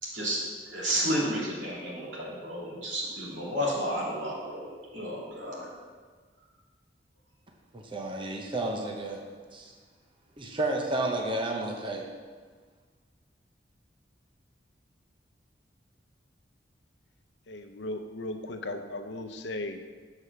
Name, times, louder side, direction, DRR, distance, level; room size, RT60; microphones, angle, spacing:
voice 1, 0.0-5.7, equal, 85° right, -5 dB, 2.7 m, -32 dB
voice 2, 7.7-9.2 9.5-9.7 10.4-12.1, right 2 dB, 30° right, 1 dB, 0.8 m, -31 dB
voice 3, 17.5-19.8, left 2 dB, 70° left, 7 dB, 0.7 m, -36 dB
7.4 x 4.9 x 6.7 m, 1.5 s
head